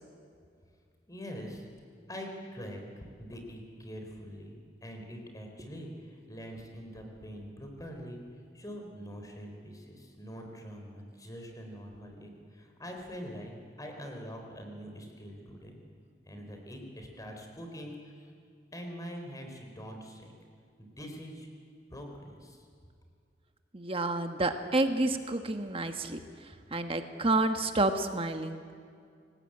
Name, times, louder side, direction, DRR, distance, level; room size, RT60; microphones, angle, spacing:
voice 1, 1.1-1.7 2.1-8.2 8.5-15.8 16.2-18.3 18.7-20.3 20.8-21.5 21.9-22.6, equal, 20° left, 3 dB, 4.1 m, -44 dB
voice 2, 23.7-26.2 26.7-28.6, right 2 dB, 30° right, 7 dB, 1.3 m, -29 dB
27.5 x 18.5 x 8.8 m, 2.2 s
head